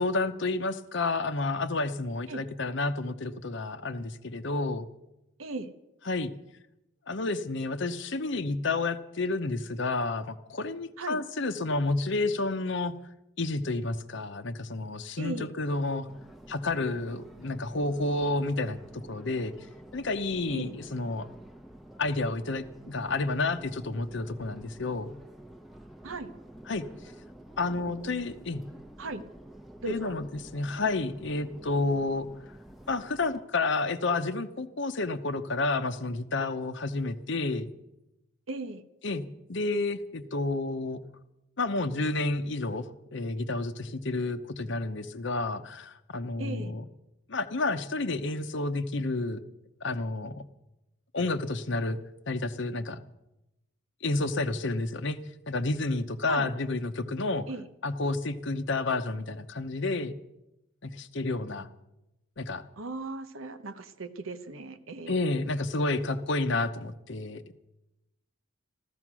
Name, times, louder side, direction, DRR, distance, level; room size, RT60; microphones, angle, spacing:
voice 1, 0.0-4.9 6.1-6.3 7.1-12.9 13.4-16.1 16.5-19.5 19.9-21.3 22.0-25.1 26.7-26.8 27.6-28.6 29.9-32.3 32.9-37.7 39.0-41.0 41.6-46.8 47.3-49.4 49.8-50.4 51.1-52.0 52.3-53.0 54.0-55.2 55.5-57.5 57.8-60.2 60.8-61.7 62.4-62.6 65.1-67.6, left 2 dB, 60° left, 11 dB, 0.8 m, -30 dB
voice 2, 5.4-5.7 11.0-11.2 15.2-15.5 20.5-20.8 26.0-26.3 27.7-28.1 29.0-29.2 29.8-30.2 38.5-38.8 46.4-46.7 56.3-56.5 57.5-57.7 62.8-65.2, right 2 dB, 80° right, 10 dB, 1.1 m, -37 dB
Subway metro underground, 16.1-33.4, right 1 dB, ahead, 0.9 m, -49 dB
14.5 x 14.5 x 6.1 m, 0.93 s
head